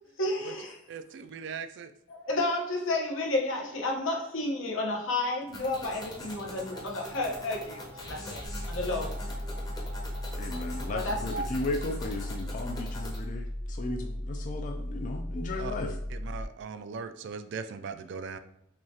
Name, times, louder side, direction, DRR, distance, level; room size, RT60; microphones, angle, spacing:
voice 1, 0.2-0.7 2.1-7.8 8.0-8.4 8.7-9.1 10.9-11.2, left 2 dB, 75° left, 0 dB, 0.9 m, -31 dB
voice 2, 0.9-1.9 15.6-15.8 16.1-18.4, right 5 dB, 60° right, 10 dB, 0.3 m, -39 dB
sound 1, 5.5-13.2, left 1 dB, 20° left, 0.8 m, -43 dB
sound 2, 6.2-12.7, right 2 dB, 80° right, 0.9 m, -46 dB
sound 3, 8.4-16.4, left 1 dB, 10° right, 0.7 m, -36 dB
voice 3, 10.4-13.5 13.8-15.9, left 2 dB, 40° left, 3 dB, 0.3 m, -35 dB
6.0 x 2.4 x 2.8 m, 0.79 s
head